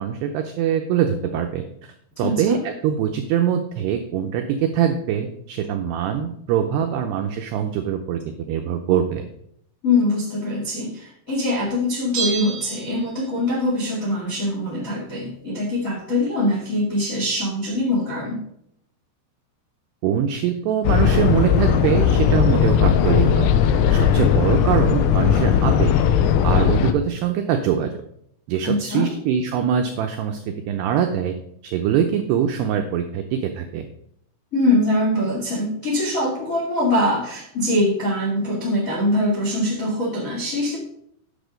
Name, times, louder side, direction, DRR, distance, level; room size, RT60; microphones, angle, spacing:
voice 1, 0.0-8.2 8.5-9.2 20.0-23.5 23.9-26.0 26.4-27.9 28.5-31.4 31.6-33.9, right 9 dB, 90° right, 5 dB, 2.3 m, -23 dB
voice 2, 2.1-2.6 9.8-18.4 28.6-29.1 34.5-40.8, left 1 dB, 65° left, 0 dB, 0.8 m, -23 dB
Bell, 12.1-13.5 13.8-13.9, right 5 dB, 60° right, 3.0 m, -30 dB
sound 1, 20.8-26.9, left 8 dB, 85° left, 3.3 m, -18 dB
10.0 x 7.0 x 5.1 m, 0.72 s
omnidirectional pair, 5.7 m